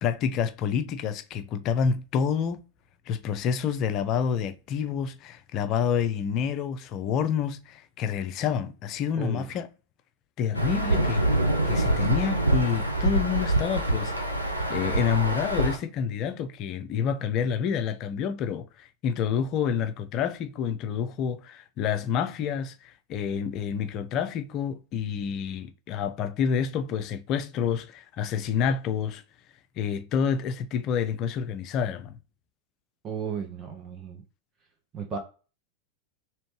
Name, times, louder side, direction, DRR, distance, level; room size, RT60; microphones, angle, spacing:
voice 1, 0.0-2.6 3.1-9.7 10.4-11.3 11.6-14.1 14.7-29.2 29.8-32.1, left 7 dB, 35° left, 0.4 m, -28 dB
voice 2, 9.1-9.6 33.0-34.2 34.9-35.2, right 7 dB, 25° right, 0.7 m, -34 dB
Insect / Thunder / Rain, 10.5-15.8, right 1 dB, 90° right, 0.6 m, -25 dB
3.1 x 2.9 x 3.1 m
figure-of-eight pair, 90°, 0 cm